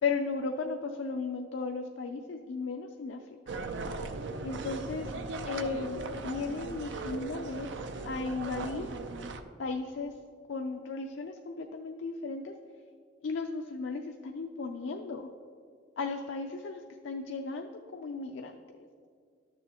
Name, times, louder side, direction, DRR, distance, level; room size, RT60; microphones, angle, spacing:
voice 1, 0.0-3.2 4.4-5.1 5.5-7.7 8.0-8.9 9.6-10.1 10.5-12.5 13.2-15.3 16.0-18.6, left 4 dB, 80° left, 5 dB, 0.4 m, -35 dB
sound 1, 3.5-9.4, right 3 dB, 70° right, 0.5 m, -38 dB
12.0 x 6.9 x 2.9 m, 2.1 s
head